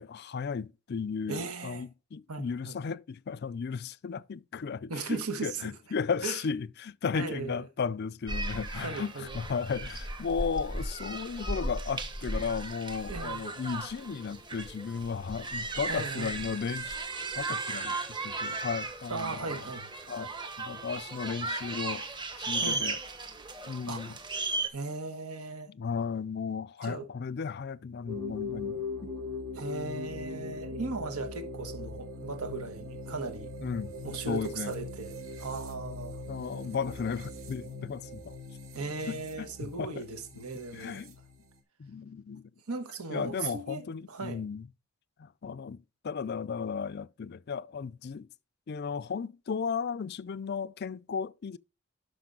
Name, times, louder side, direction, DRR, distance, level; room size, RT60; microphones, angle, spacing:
voice 1, 0.0-17.0 17.3-19.7 20.1-22.1 22.4-23.0 23.7-24.1 25.7-29.1 33.6-34.0 34.3-34.7 36.3-38.4 39.1-40.1 40.4-40.5 40.7-41.2 41.8-42.5 43.1-44.7 45.2-48.3 48.7-51.6, left 6 dB, 45° left, 0.4 m, -35 dB
voice 2, 1.3-1.8 2.3-2.7 4.9-5.7 6.2-6.4 7.1-7.6 8.7-9.3 13.1-13.4 15.9-16.5 19.1-19.9 22.6-22.9 23.9-24.2 24.7-25.7 26.8-27.1 29.5-33.5 34.0-36.2 38.7-41.0 42.7-44.4, right 3 dB, 85° right, 1.4 m, -37 dB
sound 1, 8.3-24.7, right 3 dB, 20° right, 1.1 m, -36 dB
sound 2, 28.1-41.6, left 3 dB, 65° right, 2.3 m, -41 dB
12.0 x 5.2 x 3.9 m
head